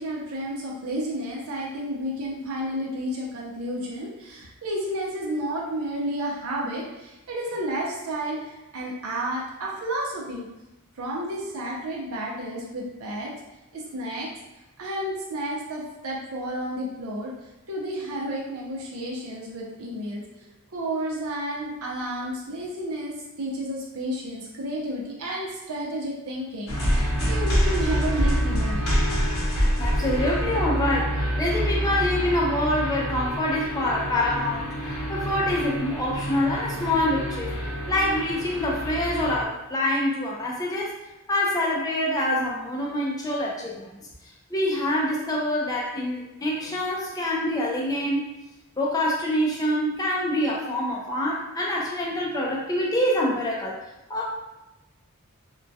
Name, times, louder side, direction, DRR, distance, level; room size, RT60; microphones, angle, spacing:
voice 1, 0.0-10.5 11.0-13.3 13.7-14.3 14.8-17.3 17.7-20.2 20.7-28.8 30.0-30.3, right 1 dB, 75° right, -3 dB, 0.6 m, -31 dB
sound 1, 26.7-39.4, equal, 70° left, 0.8 m, -26 dB
voice 2, 29.8-37.5 37.9-41.0 41.3-43.9 44.5-48.2 48.8-53.8 54.1-54.3, left 1 dB, 15° left, -3 dB, 0.4 m, -26 dB
2.2 x 2.2 x 2.6 m, 1.0 s
head